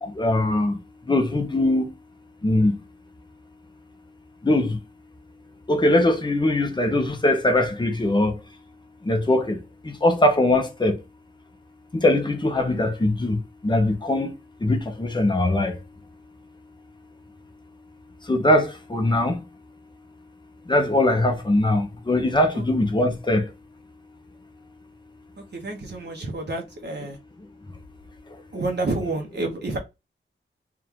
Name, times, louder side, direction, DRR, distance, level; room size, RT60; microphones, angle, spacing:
voice 1, 0.0-1.9 2.4-2.8 4.4-4.8 5.7-8.4 9.0-11.0 11.9-14.3 14.6-15.8 18.2-19.4 20.6-23.5 27.7-27.8 28.3-28.4, left 1 dB, 20° left, 1.0 m, -21 dB
voice 2, 25.4-27.2 28.5-29.8, right 2 dB, 60° right, 1.1 m, -29 dB
3.7 x 2.5 x 4.6 m
wide cardioid pair, 105°, 20 cm